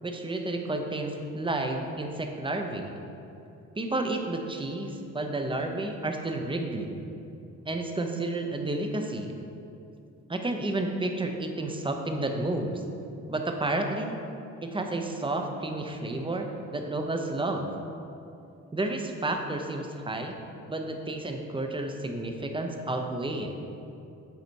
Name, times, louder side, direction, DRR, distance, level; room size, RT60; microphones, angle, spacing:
voice 1, 0.0-2.9 3.8-7.0 7.6-9.3 10.3-12.8 13.3-14.2 14.6-16.5 16.7-17.7 18.7-20.4 20.7-23.6, right 2 dB, 15° right, 4 dB, 0.7 m, -31 dB
8.0 x 4.1 x 4.6 m, 2.7 s
cardioid pair, 90°, 30 cm